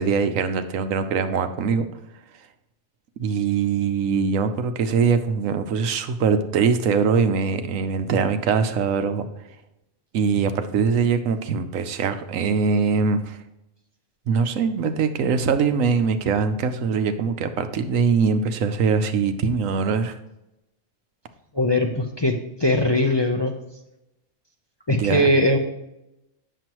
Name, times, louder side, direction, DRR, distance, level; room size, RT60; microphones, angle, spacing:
voice 1, 0.0-1.9 3.2-9.3 10.1-13.4 14.3-20.2 24.9-25.3, right 5 dB, 85° right, 9 dB, 1.1 m, -22 dB
voice 2, 21.5-22.3 22.6-23.5 24.9-25.6, left 1 dB, 30° left, 1 dB, 0.5 m, -20 dB
9.2 x 6.9 x 3.0 m, 0.91 s
omnidirectional pair, 1.3 m